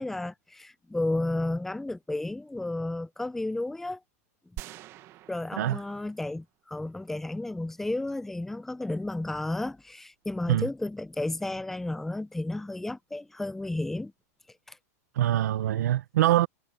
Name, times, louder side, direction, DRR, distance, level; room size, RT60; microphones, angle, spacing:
voice 1, 0.0-4.0 5.3-14.1 14.7-14.8, left 2 dB, 5° left, 0.5 m, -32 dB
sound 1, 4.6-6.5 6.8-6.9, right 14 dB, 30° right, 1.6 m, -45 dB
voice 2, 15.1-16.5, right 13 dB, 85° right, 0.8 m, -24 dB
supercardioid pair, 160°, 9 cm